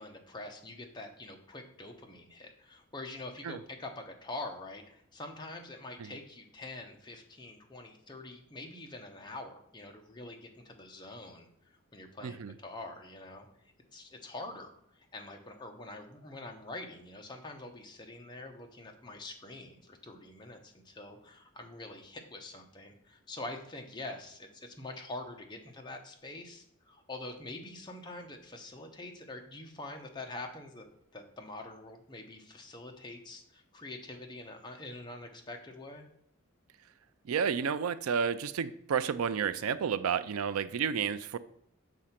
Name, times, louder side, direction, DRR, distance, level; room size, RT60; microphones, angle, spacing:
voice 1, 0.0-11.5 11.9-13.5 13.9-30.9 31.1-36.1, left 2 dB, 20° left, 2 dB, 0.8 m, -45 dB
voice 2, 12.2-12.5 37.2-41.4, right 7 dB, 85° right, 14 dB, 0.4 m, -31 dB
6.2 x 3.9 x 5.7 m, 0.73 s
head